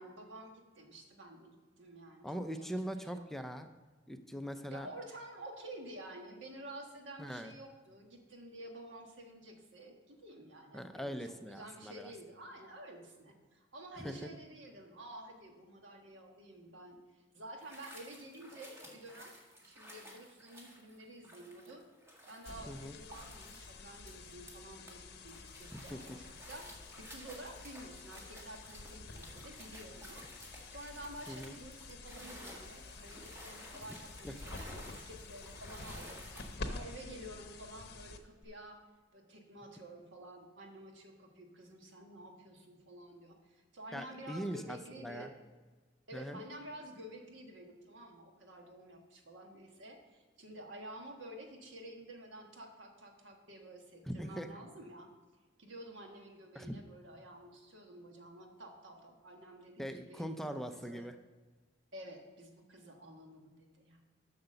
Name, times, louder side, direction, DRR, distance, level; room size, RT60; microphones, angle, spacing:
voice 1, 0.0-2.7 3.1-3.3 4.7-19.4 19.6-21.9 22.3-30.2 30.7-38.8 39.1-45.3 46.1-55.1 55.6-61.1 61.9-64.0, right 1 dB, 85° right, 2 dB, 1.5 m, -51 dB
voice 2, 2.2-3.7 4.1-4.9 7.2-7.5 10.7-12.1 14.0-14.2 22.7-23.0 25.7-26.0 31.3-31.5 34.2-34.3 43.9-45.3 46.1-46.4 54.1-54.5 56.5-56.7 59.8-61.2, equal, ahead, 7 dB, 0.4 m, -41 dB
sound 1, 17.6-24.9 25.3-36.6, equal, 15° right, 1.7 m, -54 dB
sound 2, 22.4-38.4, left 3 dB, 60° left, 0.8 m, -49 dB
7.7 x 5.8 x 6.7 m, 1.3 s
head